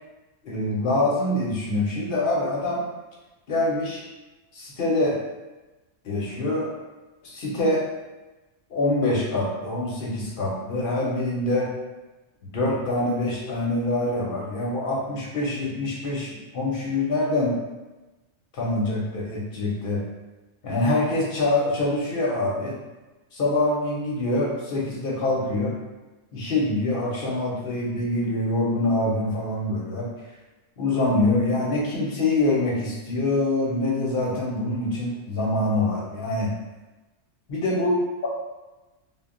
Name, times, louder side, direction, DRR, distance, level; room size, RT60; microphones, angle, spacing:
voice 1, 0.4-2.8 3.5-4.0 4.5-5.2 6.0-6.7 7.2-7.8 8.7-11.7 12.5-17.6 18.5-20.0 20.6-22.8 23.3-25.7 26.3-30.1 30.8-36.5 37.5-37.9, left 2 dB, 55° left, -4 dB, 0.7 m, -25 dB
2.2 x 2.0 x 3.6 m, 1.1 s
omnidirectional pair, 1.3 m